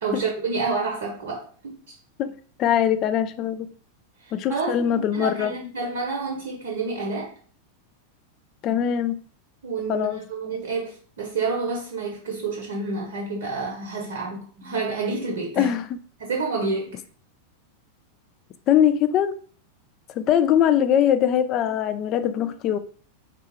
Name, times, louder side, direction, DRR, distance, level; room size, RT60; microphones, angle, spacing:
voice 1, 0.0-1.9 4.2-7.3 9.6-15.7 16.2-17.0, right 4 dB, 60° right, 0.7 m, -29 dB
voice 2, 2.2-3.7 4.3-5.5 8.6-9.2 9.9-10.2 15.6-16.0 18.7-19.4 20.2-22.8, left 10 dB, 35° left, 0.3 m, -22 dB
3.6 x 2.2 x 3.2 m
figure-of-eight pair, 90°, 0 cm